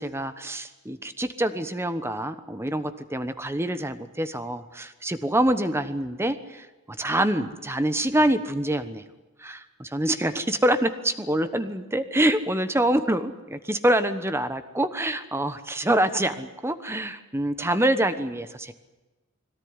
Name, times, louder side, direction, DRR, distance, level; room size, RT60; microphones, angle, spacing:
voice 1, 0.0-9.0 9.4-18.7, right 1 dB, 10° right, 10 dB, 1.1 m, -26 dB
22.0 x 17.5 x 9.7 m, 1.1 s
head